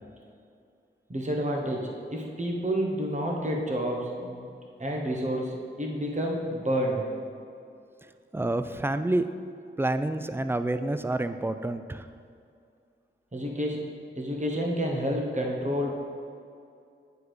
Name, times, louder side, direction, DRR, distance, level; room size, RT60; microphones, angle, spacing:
voice 1, 1.1-4.5 4.8-7.0 13.3-13.8 14.1-16.0, equal, 35° right, 0 dB, 1.3 m, -29 dB
voice 2, 8.3-9.3 9.8-12.0, right 2 dB, 10° right, 10 dB, 0.4 m, -28 dB
8.5 x 4.9 x 4.8 m, 2.4 s
wide cardioid pair, 45°, 21 cm